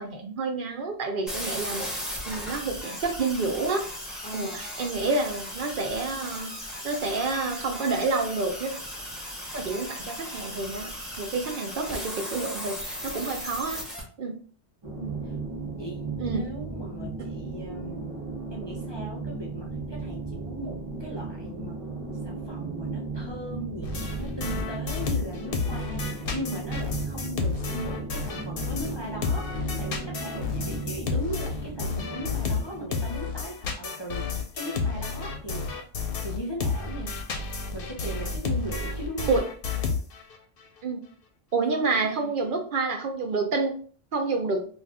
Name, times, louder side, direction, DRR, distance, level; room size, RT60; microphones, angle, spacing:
voice 1, 0.0-1.9 2.3-3.9 4.3-6.5 6.8-8.7 9.5-10.9 11.2-13.8 14.2-14.3 16.2-16.4 39.3-39.4 40.8-41.0 41.5-43.7 44.1-44.7, right 3 dB, 60° right, 3 dB, 0.7 m, -28 dB
sound 1, 1.3-14.0, equal, ahead, 0.8 m, -37 dB
voice 2, 4.2-4.6 15.0-15.3 15.8-18.2 18.5-21.8 22.2-34.3 34.5-35.7 36.2-37.2 37.7-39.4 41.7-42.3, right 1 dB, 35° left, -3 dB, 0.5 m, -38 dB
sound 2, 14.8-33.5, right 4 dB, 25° right, 0.9 m, -36 dB
sound 3, 23.8-29.0 29.2-40.4, left 5 dB, 70° left, 0.8 m, -31 dB
2.6 x 2.4 x 3.4 m, 0.43 s
omnidirectional pair, 1.0 m